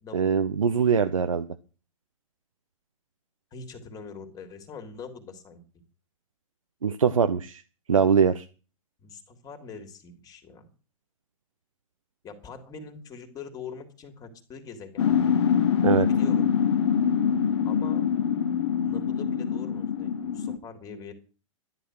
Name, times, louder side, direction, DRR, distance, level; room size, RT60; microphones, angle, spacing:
voice 1, 0.1-1.5 6.8-7.6 7.9-8.4 15.8-16.1, right 6 dB, 75° right, 9 dB, 0.9 m, -22 dB
voice 2, 3.5-5.6 9.0-10.7 12.2-15.1 15.9-16.5 17.6-18.1 18.8-21.1, left 5 dB, 20° left, 7 dB, 3.1 m, -43 dB
sound 1, 15.0-20.6, left 7 dB, 55° left, 1.6 m, -24 dB
13.0 x 11.5 x 6.3 m, 0.36 s
figure-of-eight pair, 110°, 17 cm